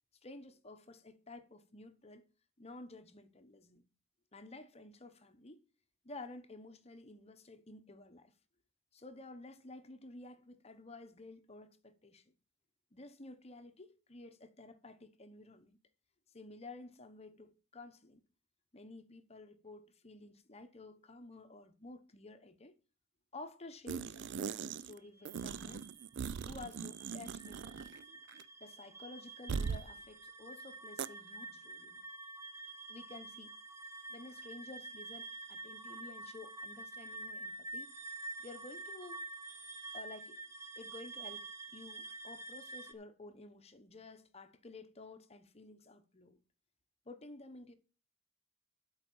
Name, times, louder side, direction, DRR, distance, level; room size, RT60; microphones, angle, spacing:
voice 1, 0.2-2.2 2.6-3.9 4.3-5.6 6.0-8.3 8.9-12.3 12.9-15.8 16.3-18.2 18.7-22.7 23.3-25.9 26.4-27.9 28.6-32.0 32.9-33.5 34.1-37.9 38.4-39.2 39.9-40.4 40.8-46.4 47.1-47.7, left 2 dB, 30° left, 1.0 m, -52 dB
sound 1, 23.9-25.0 25.2-28.0 28.3-28.4 29.5-29.9 31.0-31.1, right 6 dB, 65° right, 0.4 m, -40 dB
sound 2, 25.1-42.9, right 2 dB, 15° right, 0.9 m, -48 dB
12.0 x 4.9 x 7.0 m
head